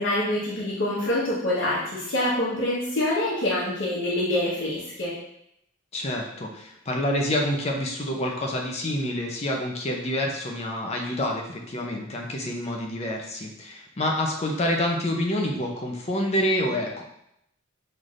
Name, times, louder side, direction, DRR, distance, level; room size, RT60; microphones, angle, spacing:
voice 1, 0.0-5.1, left 1 dB, 65° left, -9 dB, 1.1 m, -26 dB
voice 2, 5.9-17.0, left 1 dB, 30° left, 1 dB, 0.6 m, -27 dB
5.8 x 3.3 x 2.5 m, 0.77 s
head